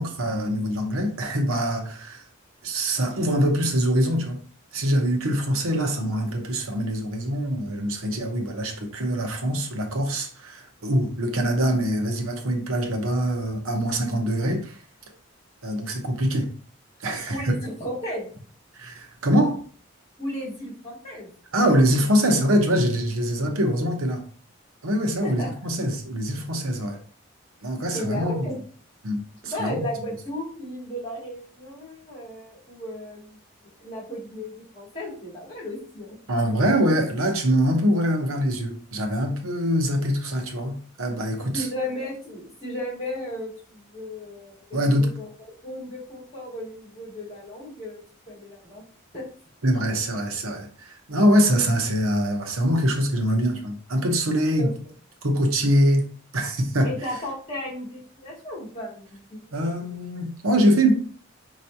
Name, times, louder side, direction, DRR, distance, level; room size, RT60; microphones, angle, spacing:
voice 1, 0.0-2.2 2.6-4.4 4.7-14.8 15.6-16.5 17.0-17.6 18.7-19.6 21.5-24.3 24.8-27.0 27.6-28.5 29.0-29.9 36.3-41.7 44.7-45.1 49.6-54.7 55.2-56.1 56.3-56.9 59.5-60.9, equal, 85° right, 1.0 m, -23 dB
voice 2, 17.3-18.3 20.2-21.3 25.2-25.5 27.9-28.6 29.4-33.4 33.6-36.2 41.5-45.3 45.6-48.0 48.3-48.8 49.1-49.2 54.6-54.7 56.8-59.9, left 1 dB, 30° left, 2.4 m, -35 dB
5.5 x 3.1 x 2.8 m
head